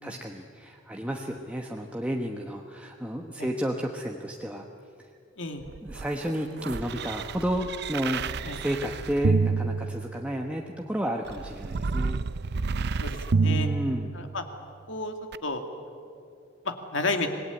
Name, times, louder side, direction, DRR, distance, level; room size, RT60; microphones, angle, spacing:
voice 1, 0.0-4.7 5.8-12.2 13.4-14.1, equal, 5° right, 1 dB, 1.1 m, -32 dB
sound 1, 5.6-10.5 11.3-14.6 15.3-15.4, right 4 dB, 55° right, 0.6 m, -29 dB
voice 2, 13.0-13.7 14.1-14.4 14.9-15.2 15.4-15.6 16.6-17.3, left 3 dB, 65° left, 6 dB, 2.4 m, -31 dB
25.5 x 19.5 x 9.8 m, 2.4 s
head